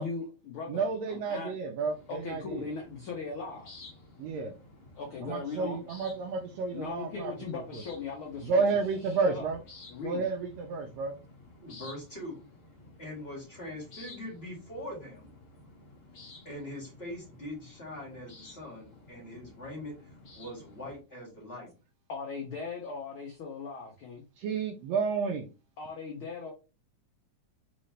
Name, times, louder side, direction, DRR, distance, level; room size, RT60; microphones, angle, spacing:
voice 1, 0.0-1.5 2.1-3.7 5.0-5.8 6.7-8.6 9.2-9.5 9.9-10.3 22.1-24.2 25.8-26.5, left 4 dB, 70° left, 1.3 m, -38 dB
voice 2, 0.7-2.7 4.2-4.5 5.2-7.8 8.4-9.6 10.0-11.1 24.4-25.5, right 4 dB, 75° right, 1.6 m, -31 dB
sound 1, 1.8-21.0, left 2 dB, 85° left, 0.7 m, -53 dB
voice 3, 11.6-12.4 13.0-15.3 16.5-21.7, left 1 dB, 25° left, 1.8 m, -42 dB
4.3 x 3.7 x 3.2 m
omnidirectional pair, 3.4 m